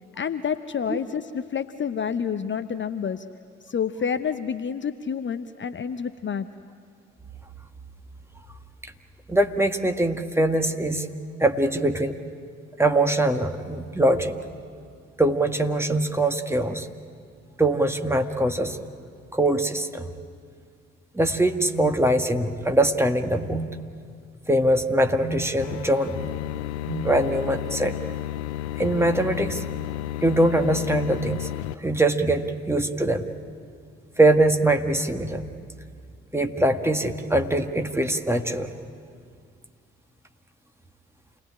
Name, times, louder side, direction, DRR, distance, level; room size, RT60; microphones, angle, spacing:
voice 1, 0.2-3.2 3.6-6.5, left 7 dB, 35° left, 10 dB, 0.8 m, -28 dB
voice 2, 9.3-11.1 11.4-12.2 12.8-14.3 15.2-16.9 17.6-18.8 19.3-20.1 21.1-23.6 24.5-26.2 27.0-28.0 28.8-29.6 30.2-31.5 31.8-33.3 34.2-35.4 36.3-38.7, right 1 dB, 5° right, 5 dB, 1.8 m, -22 dB
sound 1, 21.7-22.0 23.4-23.8 25.2-25.5 26.8-27.1, right 3 dB, 50° right, 4.1 m, -33 dB
sound 2, 25.6-31.7, left 14 dB, 75° left, 0.6 m, -32 dB
28.5 x 19.0 x 10.0 m, 2.2 s
figure-of-eight pair, 40°, 34 cm